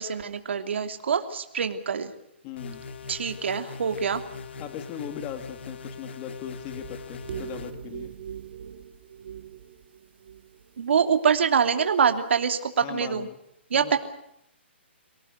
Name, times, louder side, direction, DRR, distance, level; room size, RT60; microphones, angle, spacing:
voice 1, 0.0-2.1 3.1-4.2 10.8-13.3 13.7-14.0, right 6 dB, 70° right, 7 dB, 2.9 m, -25 dB
voice 2, 2.4-2.8 4.6-8.1 12.8-13.4 13.7-14.0, left 9 dB, 25° left, 8 dB, 2.1 m, -39 dB
sound 1, 2.6-7.7, left 5 dB, 65° left, 2.6 m, -41 dB
sound 2, 6.7-10.8 11.3-11.6, right 9 dB, 55° right, 2.6 m, -41 dB
25.0 x 18.5 x 8.0 m, 0.79 s
hypercardioid pair, 165°, 7 cm